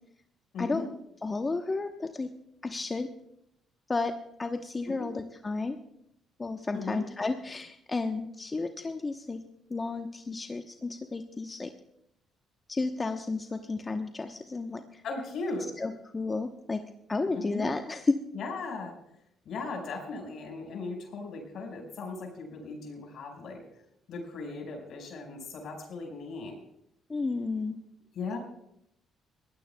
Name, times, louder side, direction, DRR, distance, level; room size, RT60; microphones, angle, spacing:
voice 1, 0.5-0.9 4.8-5.1 6.7-7.0 15.0-15.8 17.3-17.7 18.3-18.9 19.5-23.6 24.1-26.5 28.1-28.4, left 3 dB, 65° left, 2 dB, 5.2 m, -37 dB
voice 2, 1.2-2.3 2.6-3.1 3.9-5.8 6.4-9.4 9.7-11.7 12.7-15.0 15.8-16.8 17.1-18.2 27.1-27.8, left 3 dB, 30° left, 6 dB, 1.0 m, -32 dB
21.5 x 16.0 x 2.3 m, 0.78 s
supercardioid pair, 60°, 0 cm